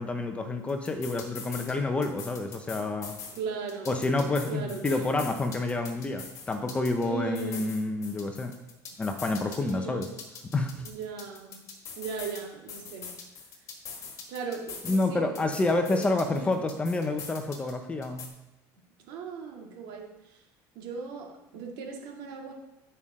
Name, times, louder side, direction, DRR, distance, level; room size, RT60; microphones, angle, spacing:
voice 1, 0.0-3.2 3.9-8.5 9.0-10.1 10.5-10.7 14.9-18.3, left 2 dB, 15° left, 5 dB, 0.7 m, -28 dB
sound 1, 0.7-1.7 2.0-3.4 3.7-7.1 7.3-9.7 10.0-12.4 12.7-15.1 15.3-17.7 18.0-18.3, left 6 dB, 40° left, 1.6 m, -43 dB
voice 2, 3.3-4.0 4.5-5.2 7.0-7.6 9.6-10.2 10.8-11.6 12.0-13.2 14.3-15.5 15.9-16.0 16.3-16.6 19.0-20.4 20.8-22.5, right 5 dB, 70° right, 0 dB, 2.2 m, -37 dB
9.6 x 5.6 x 4.9 m, 0.96 s
cardioid pair, 155°, 8 cm